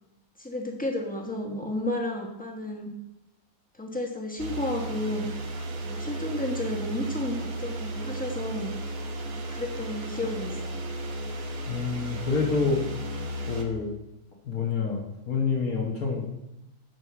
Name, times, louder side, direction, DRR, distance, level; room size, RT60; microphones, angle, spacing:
voice 1, 0.4-2.9 3.7-5.3 5.8-8.7 9.3-10.8, left 1 dB, 5° left, 0 dB, 1.3 m, -32 dB
sound 1, 4.4-13.6, right 1 dB, 60° right, 1.4 m, -34 dB
voice 2, 11.7-12.8 13.5-13.9 14.5-16.3, left 4 dB, 65° left, -2 dB, 1.9 m, -27 dB
9.9 x 5.0 x 5.7 m, 0.89 s
omnidirectional pair, 1.6 m